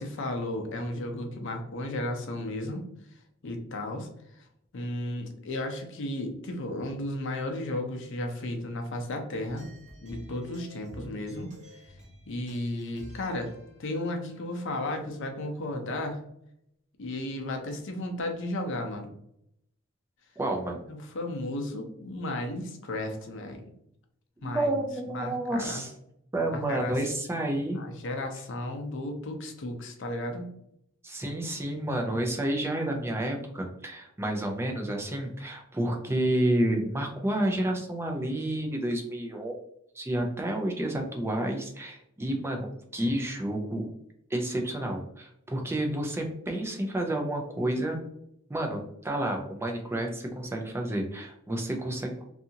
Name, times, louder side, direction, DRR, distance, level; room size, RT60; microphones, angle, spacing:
voice 1, 0.0-2.9 3.4-4.1 4.7-9.6 10.0-11.5 12.3-13.5 13.8-16.2 17.0-19.1 20.9-23.6 24.4-24.8 25.1-25.8 26.5-27.0 27.8-30.5, left 1 dB, 60° left, 4 dB, 0.6 m, -34 dB
sound 1, 9.4-15.2, equal, 35° right, 0.7 m, -51 dB
voice 2, 20.4-20.8 24.4-25.9 26.3-27.8 31.0-39.6 39.9-43.9 44.3-48.0 48.5-52.2, right 1 dB, 10° right, 2 dB, 0.4 m, -30 dB
2.7 x 2.4 x 2.7 m, 0.75 s
head